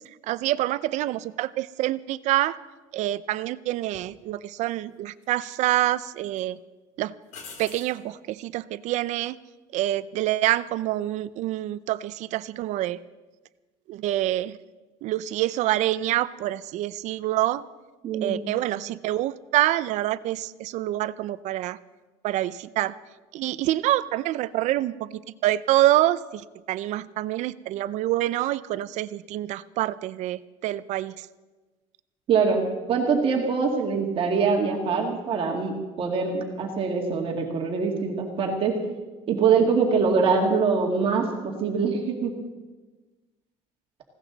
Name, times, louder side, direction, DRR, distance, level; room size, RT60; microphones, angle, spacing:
voice 1, 0.3-2.6 2.9-6.6 7.0-7.1 7.6-9.4 9.7-13.0 13.9-14.6 15.0-17.6 18.2-21.8 22.2-23.0 23.3-31.3, right 14 dB, 55° right, 17 dB, 0.5 m, -26 dB
sound 1, 3.9-4.1 5.2-5.9 6.3-6.4 7.3-8.0 11.1-11.5, left 4 dB, 55° left, 2.9 m, -45 dB
voice 2, 18.0-18.4 32.3-38.8 39.3-42.3, right 5 dB, 40° right, 1 dB, 2.2 m, -24 dB
19.5 x 17.0 x 4.0 m, 1.2 s
cardioid pair, 150°, 14 cm